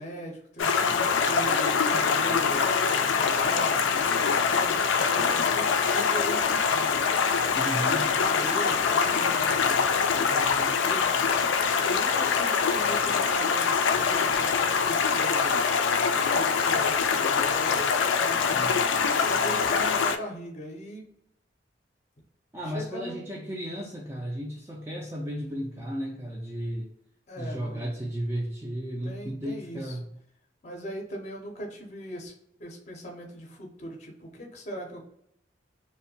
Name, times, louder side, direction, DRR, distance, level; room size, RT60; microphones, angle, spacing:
voice 1, 0.0-4.1 4.4-7.0 8.0-11.2 11.8-15.5 16.1-18.8 19.1-21.0 22.6-23.2 27.3-27.9 29.0-30.0 30.6-32.3 32.6-35.0, right 1 dB, 40° left, 1 dB, 0.6 m, -39 dB
Stream, 0.6-20.2, left 6 dB, 85° left, 0.3 m, -24 dB
voice 2, 7.6-8.1 18.5-19.1 22.5-26.9 27.4-30.1, equal, 15° right, -3 dB, 0.3 m, -34 dB
2.6 x 2.1 x 2.7 m, 0.73 s
head